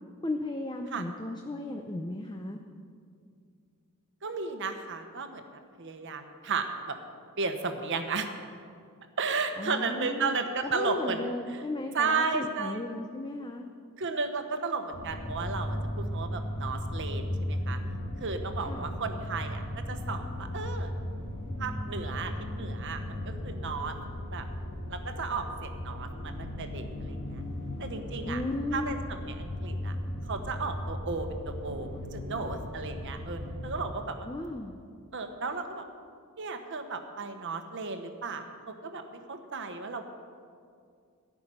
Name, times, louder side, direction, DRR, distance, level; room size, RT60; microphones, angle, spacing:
voice 1, 0.2-2.6 9.6-13.7 18.6-19.0 28.2-29.0 34.2-34.8, left 2 dB, 20° left, 4 dB, 0.6 m, -35 dB
voice 2, 4.2-5.4 5.8-7.0 7.4-8.3 9.2-11.2 11.5-11.6 11.9-12.8 14.0-17.8 18.2-20.9 21.6-23.9 24.3-24.5 24.9-27.4 27.8-28.4 28.7-29.9 30.3-34.3 35.1-35.8 36.4-40.1, right 4 dB, 55° right, 6 dB, 1.1 m, -34 dB
sound 1, 14.9-33.9, left 1 dB, 55° left, 2.7 m, -36 dB
14.0 x 6.0 x 9.9 m, 2.3 s
head